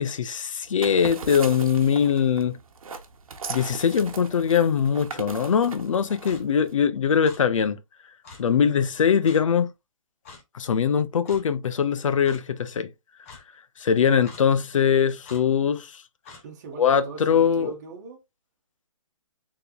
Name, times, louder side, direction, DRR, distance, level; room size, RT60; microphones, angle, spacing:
voice 1, 0.0-2.6 3.5-7.8 8.4-9.7 10.5-12.9 13.8-16.0 16.8-17.7, left 7 dB, 70° left, 0.6 m, -22 dB
sound 1, 0.6-6.7, right 5 dB, 85° right, 1.0 m, -39 dB
Clock, 6.2-6.4 7.2-7.4 8.2-8.4 9.2-9.4 10.3-10.4 11.3-11.4 12.2-12.4 13.2-13.4 14.2-14.4 15.2-15.4 16.3-16.4, left 4 dB, 25° left, 1.0 m, -44 dB
voice 2, 16.4-18.2, right 4 dB, 30° right, 1.2 m, -40 dB
3.6 x 3.4 x 2.3 m
hypercardioid pair, 170°, 17 cm